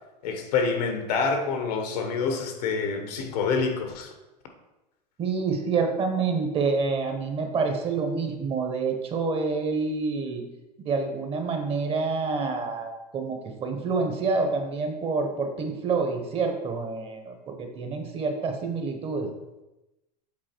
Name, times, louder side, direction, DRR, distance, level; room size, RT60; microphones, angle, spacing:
voice 1, 0.2-4.1, left 5 dB, 70° left, 6 dB, 1.3 m, -27 dB
voice 2, 5.2-10.4 10.8-19.3, right 4 dB, 25° right, 4 dB, 1.0 m, -27 dB
7.6 x 4.1 x 4.5 m, 1.0 s
supercardioid pair, 135°, 21 cm